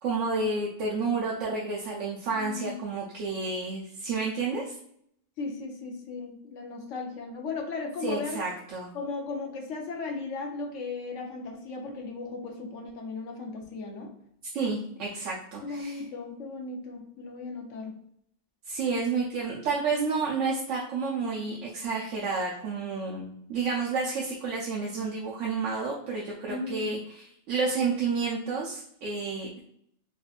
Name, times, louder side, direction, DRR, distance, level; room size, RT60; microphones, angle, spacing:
voice 1, 0.0-4.8 8.0-8.9 14.5-16.0 18.6-29.6, right 4 dB, 75° right, -4 dB, 1.0 m, -30 dB
voice 2, 2.3-2.8 5.4-8.4 8.9-14.1 15.6-18.0 26.5-26.9, left 3 dB, 75° left, 2 dB, 1.0 m, -36 dB
4.3 x 2.5 x 2.3 m, 0.70 s
omnidirectional pair, 1.3 m